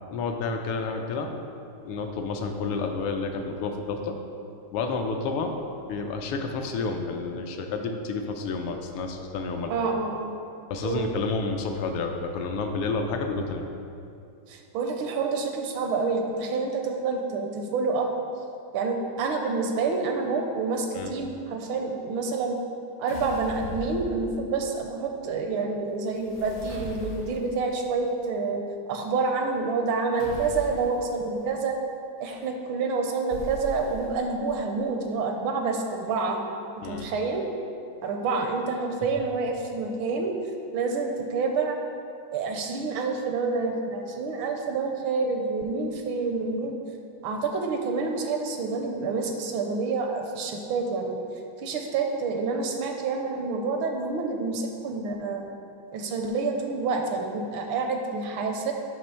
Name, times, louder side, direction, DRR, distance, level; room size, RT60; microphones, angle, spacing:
voice 1, 0.1-1.4 1.8-4.2 4.7-9.8 10.7-13.6 20.9-21.1 36.8-37.1, left 4 dB, 80° left, 4 dB, 1.4 m, -30 dB
voice 2, 9.7-10.3 10.8-11.1 14.5-18.1 18.7-22.6 23.0-28.6 28.9-31.8 32.2-36.4 36.8-37.4 38.0-40.4 40.7-41.8 42.3-46.7 47.2-51.2 51.6-55.5 55.9-58.7, right 4 dB, 75° right, 3 dB, 1.3 m, -28 dB
sound 1, 23.1-24.7 26.1-27.6 30.2-31.0 33.3-34.4, equal, 60° left, 0.8 m, -39 dB
8.8 x 2.9 x 5.5 m, 2.6 s
omnidirectional pair, 2.4 m